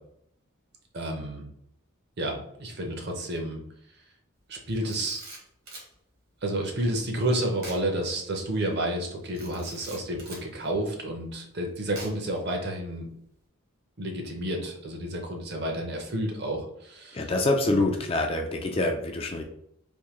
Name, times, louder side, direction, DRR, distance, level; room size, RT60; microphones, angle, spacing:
voice 1, 0.9-1.4 2.2-3.6 4.5-5.2 6.4-13.1 14.0-17.2 17.7-17.9, right 1 dB, 50° right, 2 dB, 0.7 m, -30 dB
Camera, 4.7-5.9 7.6-7.9 8.2-8.3 9.3-10.5 12.0-12.4, right 2 dB, 75° right, 1.4 m, -44 dB
voice 2, 17.1-19.4, left 2 dB, 25° left, 3 dB, 0.3 m, -26 dB
3.5 x 2.7 x 3.0 m, 0.72 s
head